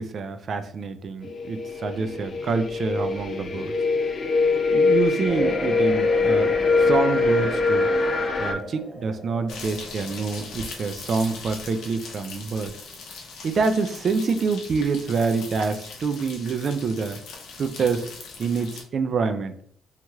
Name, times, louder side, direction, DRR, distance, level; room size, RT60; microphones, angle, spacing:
voice 1, 0.0-3.7 4.7-7.9 8.4-12.7 13.4-17.2 17.6-18.1 18.4-19.5, right 4 dB, 50° right, 9 dB, 0.3 m, -26 dB
sound 1, 1.2-8.5, left 4 dB, 45° left, 0.4 m, -23 dB
sound 2, 5.3-10.5, right 1 dB, 5° left, 0.6 m, -35 dB
sound 3, 9.5-18.8, left 4 dB, 80° left, 0.7 m, -40 dB
2.9 x 2.9 x 2.3 m, 0.65 s
cardioid pair, 90°, 0 cm